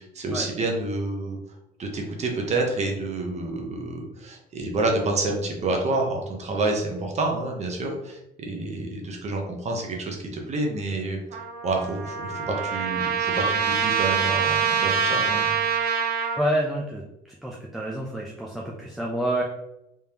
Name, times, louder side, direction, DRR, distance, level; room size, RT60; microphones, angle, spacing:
voice 1, 0.0-1.4 1.8-11.2 11.6-15.5, right 2 dB, 40° right, 1 dB, 0.9 m, -28 dB
Trumpet, 11.3-16.4, right 7 dB, 65° right, 0.7 m, -25 dB
voice 2, 16.4-17.0 17.4-19.4, right 1 dB, ahead, -3 dB, 0.6 m, -28 dB
3.5 x 3.4 x 2.9 m, 0.85 s
cardioid pair, 110°, 17 cm